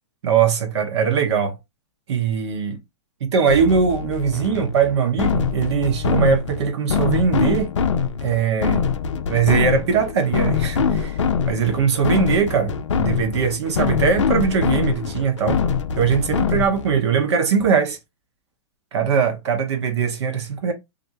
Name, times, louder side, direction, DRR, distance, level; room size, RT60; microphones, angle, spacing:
voice 1, 0.2-1.6 2.1-2.8 3.2-7.7 8.2-8.9 9.3-15.6 15.9-18.0 18.9-20.7, right 6 dB, 65° right, 0.9 m, -21 dB
sound 1, 3.5-17.0, left 6 dB, 85° left, 0.5 m, -23 dB
2.6 x 2.1 x 2.7 m
hypercardioid pair, 130°, 15 cm